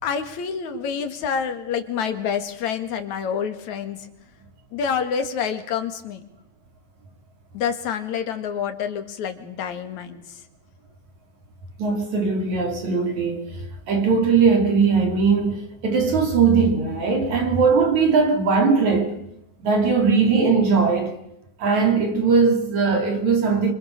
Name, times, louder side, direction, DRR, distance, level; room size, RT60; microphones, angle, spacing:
voice 1, 0.0-4.0 4.7-6.2 7.5-10.4, left 7 dB, 50° left, 2.8 m, -27 dB
voice 2, 11.8-13.5 13.9-19.1 19.6-21.2 21.6-23.7, right 5 dB, 45° right, 3.4 m, -19 dB
27.5 x 25.5 x 6.7 m
omnidirectional pair, 5.2 m